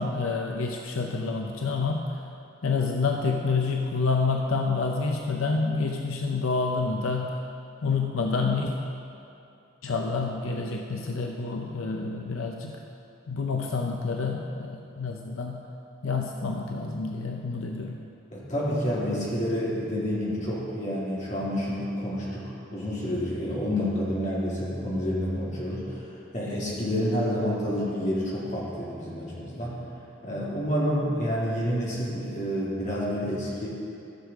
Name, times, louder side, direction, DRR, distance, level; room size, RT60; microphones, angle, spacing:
voice 1, 0.0-2.2 2.6-7.4 7.8-8.7 9.8-12.8 13.3-15.6 16.0-18.0, left 4 dB, 80° left, 2 dB, 0.6 m, -28 dB
voice 2, 18.3-29.8 30.2-33.7, equal, 35° left, -7 dB, 2.3 m, -29 dB
14.0 x 6.5 x 3.6 m, 2.8 s
head